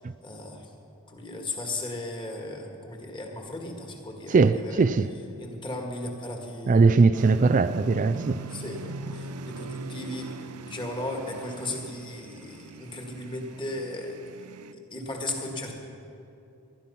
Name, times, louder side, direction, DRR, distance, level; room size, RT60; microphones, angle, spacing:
voice 1, 0.2-0.7 1.1-4.8 5.4-7.2 8.5-14.2 14.7-15.8, left 2 dB, 20° left, 1.9 m, -36 dB
voice 2, 4.3-5.1 6.7-8.4, right 4 dB, 35° right, 0.4 m, -20 dB
sound 1, 7.1-14.7, right 3 dB, 85° right, 0.7 m, -41 dB
19.5 x 12.5 x 5.7 m
head